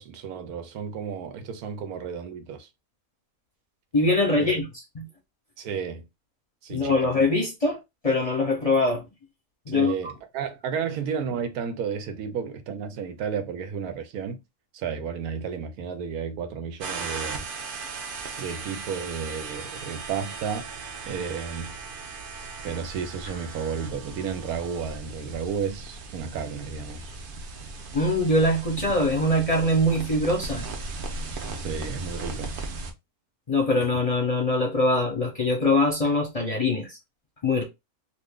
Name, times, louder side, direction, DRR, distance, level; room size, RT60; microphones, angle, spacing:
voice 1, 0.0-2.7 4.3-4.5 5.6-6.1 6.6-7.3 9.7-14.4 14.7-17.5 18.4-20.7 21.1-21.8 22.6-27.1 31.6-32.5, right 6 dB, 90° right, 1.1 m, -32 dB
voice 2, 3.9-4.7 4.9-5.0 6.7-7.8 8.0-9.0 9.7-10.0 18.4-18.5 27.9-30.7 33.5-37.0 37.4-37.6, left 2 dB, 35° left, 0.7 m, -23 dB
sound 1, 16.8-32.9, right 4 dB, 60° right, 0.6 m, -37 dB
2.6 x 2.5 x 3.5 m
omnidirectional pair, 1.5 m